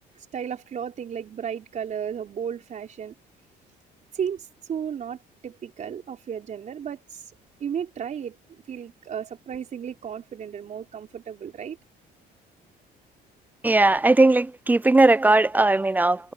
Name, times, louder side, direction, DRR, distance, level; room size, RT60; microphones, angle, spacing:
voice 1, 0.3-3.1 4.1-7.2 7.6-11.8, right 8 dB, 45° right, 4.1 m, -34 dB
voice 2, 13.6-16.3, right 2 dB, 10° right, 0.3 m, -18 dB
cardioid pair, 110°, 17 cm